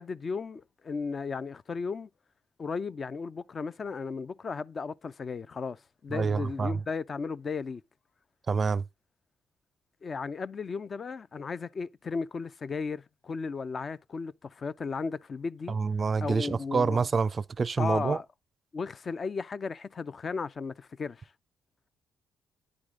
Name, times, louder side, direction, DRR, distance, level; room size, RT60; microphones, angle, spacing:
voice 1, 0.0-2.1 2.6-7.8 10.0-15.8 16.2-17.0 17.8-18.2 18.7-21.3, left 5 dB, 40° left, 0.5 m, -35 dB
voice 2, 6.1-6.8 8.5-8.8 15.7-18.2, right 5 dB, 35° right, 0.4 m, -27 dB
9.8 x 4.9 x 3.6 m
cardioid pair, 90°, 0 cm